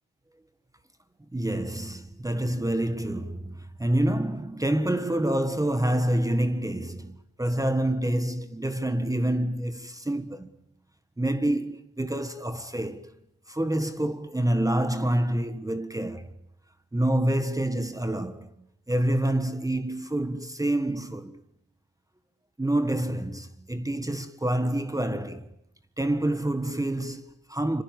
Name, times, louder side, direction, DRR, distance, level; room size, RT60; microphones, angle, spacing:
voice 1, 1.3-10.6 11.2-13.1 13.5-16.4 16.9-18.5 18.9-21.4 22.6-25.5 26.0-27.8, right 1 dB, 10° right, 1.5 m, -27 dB
26.0 x 26.0 x 8.4 m
cardioid pair, 120°, 37 cm